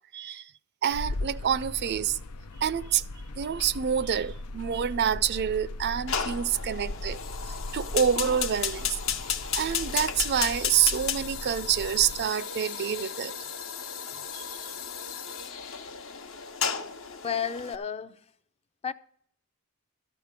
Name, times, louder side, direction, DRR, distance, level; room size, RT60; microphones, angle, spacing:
voice 1, 0.1-0.4 0.8-2.2 2.6-3.0 3.4-7.2 7.7-9.0 9.5-13.4 14.3-14.4, right 8 dB, 50° right, 0.4 m, -27 dB
sound 1, 0.9-12.3, left 2 dB, 90° left, 0.6 m, -38 dB
Fire, 6.1-17.7, left 7 dB, 65° left, 1.0 m, -34 dB
voice 2, 17.2-18.3 18.8-18.9, left 7 dB, 25° left, 0.5 m, -32 dB
13.0 x 5.1 x 8.1 m
head